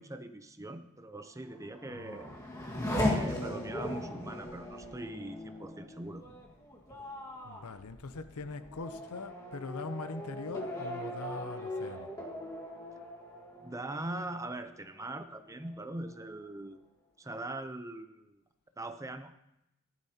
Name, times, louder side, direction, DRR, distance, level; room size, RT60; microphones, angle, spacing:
voice 1, 0.0-2.3 3.0-6.2 13.6-16.8 17.2-18.4 18.8-19.3, right 2 dB, 15° right, 9 dB, 0.6 m, -41 dB
Race car auto racing / Accelerating revving vroom, 1.5-14.7 15.1-15.8, left 1 dB, 15° left, 1.7 m, -38 dB
voice 2, 1.9-2.2 7.4-12.1, left 3 dB, 85° left, 11 dB, 0.7 m, -42 dB
15.0 x 12.0 x 2.9 m, 0.86 s
head